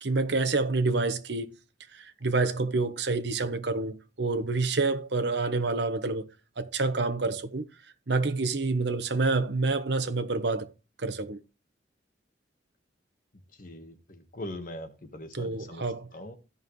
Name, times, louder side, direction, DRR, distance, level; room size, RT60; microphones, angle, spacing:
voice 1, 0.0-1.5 1.9-6.3 6.6-7.6 8.1-10.7 11.0-11.4 15.4-16.0, right 3 dB, 70° right, 1.1 m, -28 dB
voice 2, 13.5-16.4, left 1 dB, 50° left, 1.5 m, -42 dB
15.5 x 5.5 x 3.2 m
head